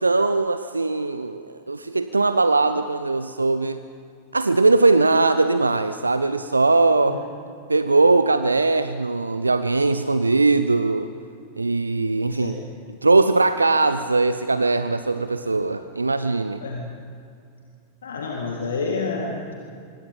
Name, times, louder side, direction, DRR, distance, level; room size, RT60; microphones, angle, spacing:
voice 1, 0.0-3.8 4.3-7.2 7.7-11.1 11.6-12.6 13.0-16.6, right 3 dB, 80° right, 11 dB, 0.6 m, -20 dB
voice 2, 18.0-19.5, left 4 dB, 65° left, 0 dB, 2.3 m, -28 dB
25.0 x 24.0 x 5.5 m, 2.4 s
figure-of-eight pair, 90°, 0 cm